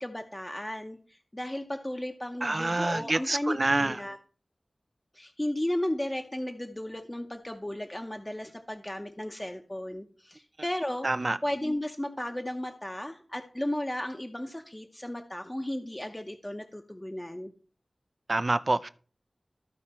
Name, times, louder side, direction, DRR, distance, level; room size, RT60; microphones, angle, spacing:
voice 1, 0.0-4.2 5.1-11.1 11.4-17.5, left 1 dB, 20° left, 0.8 m, -34 dB
voice 2, 2.4-4.0 11.0-11.4 18.3-18.9, right 2 dB, 45° right, 0.4 m, -27 dB
13.5 x 5.0 x 4.3 m
wide cardioid pair, 75°, 0 cm